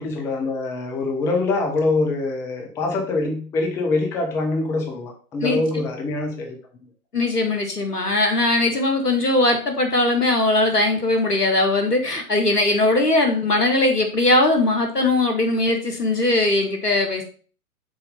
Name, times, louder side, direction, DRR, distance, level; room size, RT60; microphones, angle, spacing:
voice 1, 0.0-6.6, left 3 dB, 5° left, 1 dB, 0.5 m, -24 dB
voice 2, 7.1-17.2, left 2 dB, 90° left, 4 dB, 1.8 m, -20 dB
6.1 x 4.1 x 5.1 m, 0.40 s
figure-of-eight pair, 115°, 46 cm